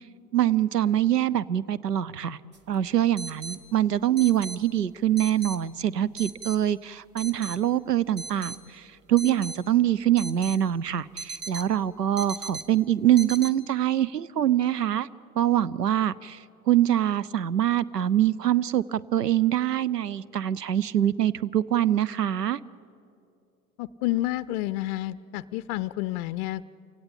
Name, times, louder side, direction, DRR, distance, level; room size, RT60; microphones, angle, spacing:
voice 1, 0.3-2.4 2.7-8.8 9.1-15.1 15.4-16.4 16.7-22.6, right 11 dB, 90° right, 20 dB, 0.6 m, -24 dB
sound 1, 2.5-2.6 3.2-3.6 4.2-4.6 5.2-5.6 6.2-6.6 7.2-7.6 8.2-8.6 9.2-9.6 10.2-10.6 11.2-11.7 12.2-12.6 13.2-13.5, right 4 dB, 20° right, 1.2 m, -37 dB
voice 2, 23.8-26.7, left 16 dB, 45° left, 15 dB, 0.5 m, -30 dB
28.5 x 17.5 x 8.7 m, 2.6 s
figure-of-eight pair, 85°, 47 cm